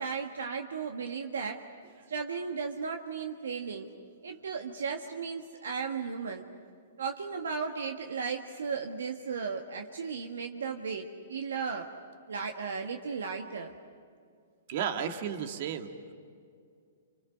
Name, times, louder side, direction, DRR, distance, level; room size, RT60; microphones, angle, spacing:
voice 1, 0.0-1.6 2.1-3.9 4.2-6.5 7.0-11.9 12.3-13.7, right 5 dB, 75° right, 4 dB, 1.6 m, -35 dB
voice 2, 14.7-16.1, right 8 dB, 55° right, 6 dB, 2.2 m, -34 dB
30.0 x 27.0 x 6.6 m, 2.2 s
hypercardioid pair, 120°, 0 cm